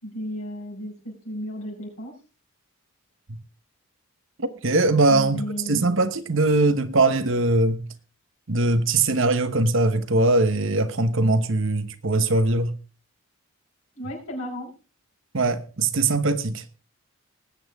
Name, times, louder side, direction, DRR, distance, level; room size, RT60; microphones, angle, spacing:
voice 1, 0.0-2.1 5.1-5.9 14.0-14.7, equal, 75° left, 5.5 m, -34 dB
voice 2, 4.4-5.4 5.7-7.9 8.5-12.8 15.3-16.6, right 2 dB, 60° right, 1.0 m, -21 dB
19.5 x 8.6 x 3.5 m
head